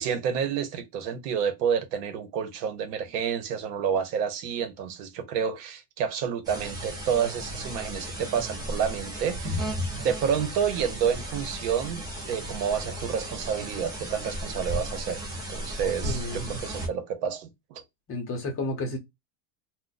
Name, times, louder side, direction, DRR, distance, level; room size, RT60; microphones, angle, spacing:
voice 1, 0.0-15.2 15.5-17.8, right 7 dB, 70° right, 1.1 m, -29 dB
sound 1, 6.4-16.9, right 1 dB, 10° right, 0.3 m, -35 dB
voice 2, 16.0-16.6 18.1-19.0, left 2 dB, 25° left, 0.8 m, -32 dB
2.5 x 2.2 x 3.9 m
cardioid pair, 160°, 48 cm